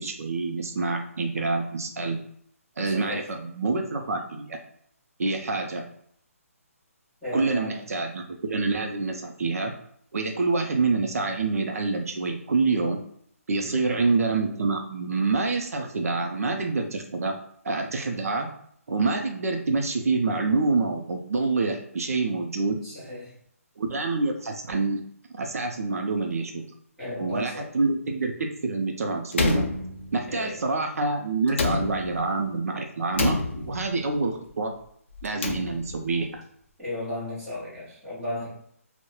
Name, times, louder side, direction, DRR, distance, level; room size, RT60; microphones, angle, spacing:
voice 1, 0.0-2.2 2.8-4.6 5.2-5.8 7.3-9.7 10.1-13.0 13.5-17.3 17.6-18.5 18.9-22.8 23.8-25.0 25.3-26.6 27.1-29.6 30.1-34.7 35.2-36.4, right 3 dB, 70° right, 3 dB, 0.4 m, -27 dB
voice 2, 2.9-3.2 7.2-7.8 13.6-13.8 22.8-23.2 27.0-27.6 30.3-30.5 36.8-38.5, left 1 dB, ahead, -14 dB, 0.8 m, -34 dB
Slam, 29.3-30.5 31.5-32.4 33.1-34.0 35.2-36.1, left 3 dB, 50° left, 0.4 m, -28 dB
2.9 x 2.0 x 2.3 m, 0.67 s
hypercardioid pair, 175°, 8 cm